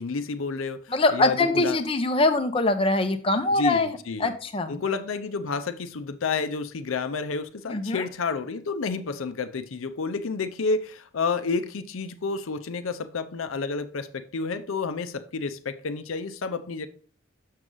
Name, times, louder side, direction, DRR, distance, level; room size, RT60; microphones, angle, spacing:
voice 1, 0.0-1.8 3.6-4.3 4.7-16.9, left 4 dB, 85° left, 0.6 m, -30 dB
voice 2, 0.9-3.9 4.2-4.8 7.7-8.1, left 2 dB, 25° left, 0.6 m, -23 dB
6.4 x 6.2 x 3.8 m
head